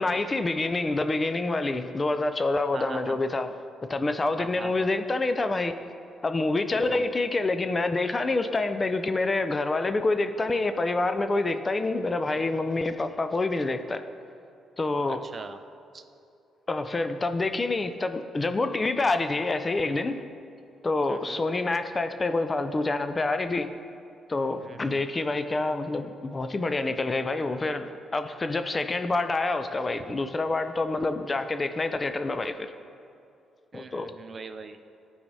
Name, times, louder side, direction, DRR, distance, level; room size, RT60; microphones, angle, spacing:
voice 1, 0.0-3.5 3.9-5.8 6.2-14.0 14.8-15.2 16.7-20.2 20.8-23.7 24.3-32.7 33.7-34.1, left 2 dB, 25° left, 9 dB, 0.4 m, -27 dB
voice 2, 2.7-3.2 4.4-4.9 6.7-7.1 15.2-15.6 15.9-16.0 21.1-21.4 24.6-25.0 33.7-34.8, right 4 dB, 40° right, 9 dB, 0.4 m, -41 dB
13.5 x 4.8 x 2.7 m, 2.6 s
cardioid pair, 90°, 0 cm